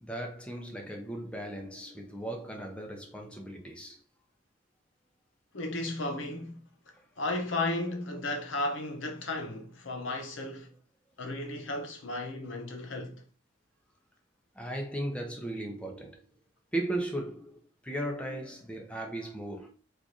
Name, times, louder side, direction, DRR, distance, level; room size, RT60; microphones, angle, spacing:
voice 1, 0.0-4.0 14.5-16.2 16.7-19.7, right 1 dB, 5° left, 0.7 m, -36 dB
voice 2, 5.5-6.7 7.2-10.7 11.2-13.2, left 2 dB, 70° left, 0.8 m, -34 dB
3.2 x 2.5 x 3.9 m
head